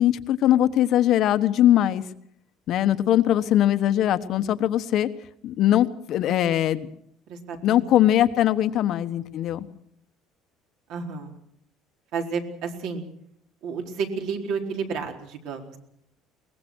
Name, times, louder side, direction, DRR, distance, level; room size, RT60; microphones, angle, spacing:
voice 1, 0.0-2.0 2.7-5.1 5.4-6.9 7.6-9.7, left 12 dB, 45° left, 11 dB, 1.2 m, -21 dB
voice 2, 7.3-7.8 10.9-11.4 12.1-13.0 13.6-15.8, right 5 dB, 60° right, 4 dB, 4.3 m, -31 dB
22.5 x 20.5 x 6.3 m, 0.69 s
cardioid pair, 170°, 0 cm